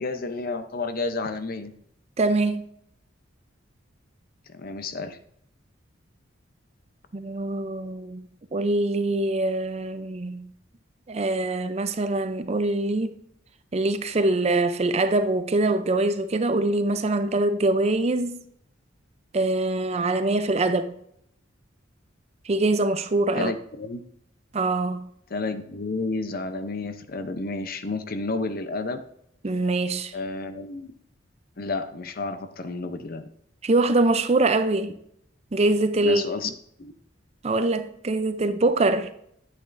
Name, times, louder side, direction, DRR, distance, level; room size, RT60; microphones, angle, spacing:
voice 1, 0.0-1.7 4.5-5.2 23.4-24.0 25.3-29.0 30.1-30.9 31.6-33.3 36.0-36.5 36.8-36.9, left 3 dB, 45° left, 0.7 m, -31 dB
voice 2, 2.2-2.6 7.1-8.2 8.5-10.5 11.1-13.1 13.7-18.4 19.3-21.0 22.5-23.5 24.5-25.1 29.4-30.1 33.6-35.0 35.5-36.5 37.4-39.1, right 2 dB, 30° right, 0.5 m, -24 dB
9.5 x 8.4 x 2.6 m
head